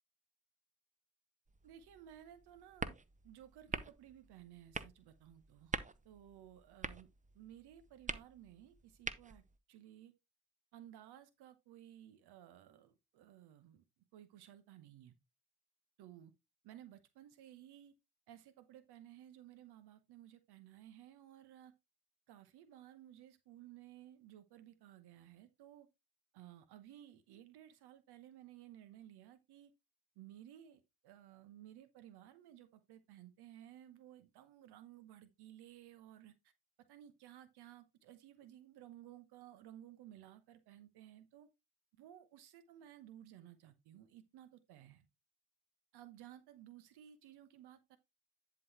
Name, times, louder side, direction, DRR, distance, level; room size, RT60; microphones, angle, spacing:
sound 1, 1.5-9.6, right 4 dB, 15° right, 0.9 m, -46 dB
voice 1, 1.6-3.0 3.2-5.7 6.0-7.1 7.3-9.4 9.7-10.1 10.7-13.8 14.1-15.1 16.0-16.3 16.6-17.9 18.3-21.7 22.3-25.9 26.3-29.7 30.2-36.5 36.9-41.5 42.0-45.1 45.9-48.0, right 12 dB, 60° right, 1.1 m, -57 dB
11.0 x 4.0 x 4.3 m
figure-of-eight pair, 45°, 45 cm